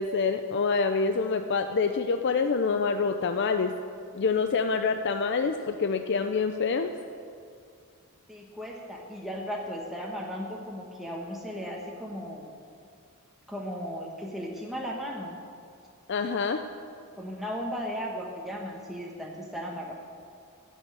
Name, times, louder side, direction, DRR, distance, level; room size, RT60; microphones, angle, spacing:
voice 1, 0.0-3.7 4.1-6.9 16.1-16.6, left 4 dB, 55° left, 7 dB, 0.5 m, -26 dB
voice 2, 8.3-12.4 13.5-15.3 17.2-19.9, equal, ahead, -3 dB, 1.3 m, -36 dB
15.5 x 6.3 x 8.0 m, 2.4 s
head